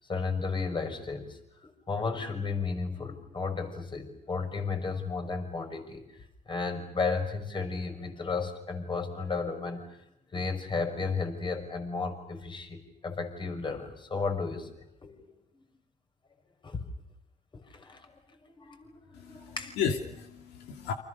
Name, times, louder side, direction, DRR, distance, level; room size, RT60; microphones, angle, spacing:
voice 1, 0.1-6.0 6.5-9.9 10.3-15.3 16.6-16.8 17.7-19.8, left 4 dB, 30° left, 6 dB, 5.9 m, -34 dB
voice 2, 19.1-20.9, left 7 dB, 80° left, 5 dB, 2.8 m, -33 dB
30.0 x 26.0 x 6.6 m, 0.81 s
cardioid pair, 110°, 17 cm